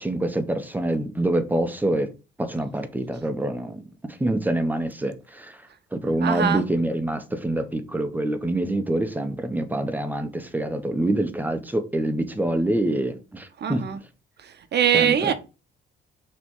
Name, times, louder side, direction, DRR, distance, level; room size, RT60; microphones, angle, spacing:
voice 1, 0.0-2.1 2.4-5.6 5.9-13.9 14.9-15.3, right 1 dB, 10° right, 1.1 m, -26 dB
voice 2, 6.2-6.6 13.6-14.0 14.4-15.3, right 9 dB, 55° right, 1.0 m, -22 dB
6.0 x 3.4 x 5.6 m
cardioid pair, 90°, 20 cm